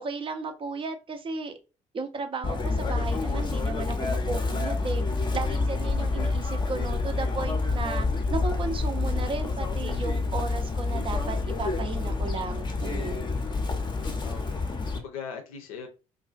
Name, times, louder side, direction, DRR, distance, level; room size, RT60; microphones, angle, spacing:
voice 1, 0.0-1.5 1.9-5.0 5.3-13.3, right 4 dB, 30° right, 0.4 m, -34 dB
Chirp tweet, 2.4-15.0, left 3 dB, 25° left, 0.6 m, -28 dB
voice 2, 13.6-15.9, left 6 dB, 75° left, 0.5 m, -42 dB
2.4 x 2.2 x 2.3 m
figure-of-eight pair, 50°, 18 cm